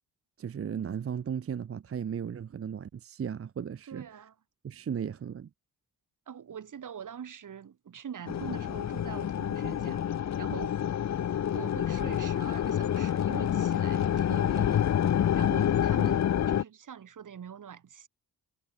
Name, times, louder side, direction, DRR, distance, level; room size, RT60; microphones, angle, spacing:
voice 1, 0.4-4.0 4.6-5.5, right 8 dB, 35° right, 0.6 m, -35 dB
voice 2, 3.9-4.3 6.3-10.8 11.5-14.9 15.3-18.1, right 8 dB, 55° right, 1.2 m, -44 dB
sound 1, 8.3-16.6, left 10 dB, 45° left, 0.6 m, -28 dB
cardioid pair, 65°, 38 cm